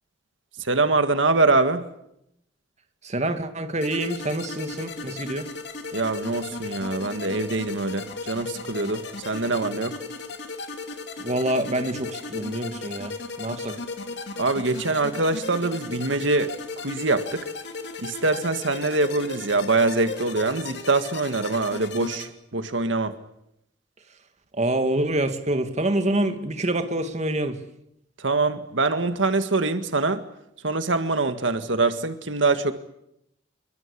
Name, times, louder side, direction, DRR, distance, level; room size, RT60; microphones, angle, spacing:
voice 1, 0.6-1.9 5.9-10.0 14.4-17.5 18.0-23.2 28.2-30.2 30.6-32.7, right 3 dB, 80° right, 9 dB, 1.9 m, -24 dB
voice 2, 3.0-5.5 11.2-13.1 13.4-13.7 24.5-27.6, right 1 dB, 35° right, 7 dB, 2.3 m, -26 dB
sound 1, 3.8-22.3, left 3 dB, 60° left, 3.1 m, -36 dB
26.5 x 23.5 x 8.5 m, 0.80 s
head